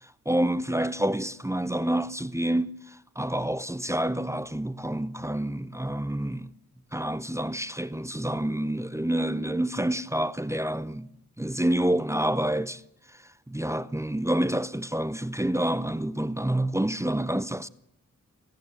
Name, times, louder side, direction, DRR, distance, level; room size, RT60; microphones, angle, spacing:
voice 1, 0.0-6.5 6.9-11.1 11.4-12.8 13.1-13.2 13.5-17.7, right 1 dB, 10° right, 0.8 m, -28 dB
25.0 x 14.5 x 7.9 m
cardioid pair, 55°, 32 cm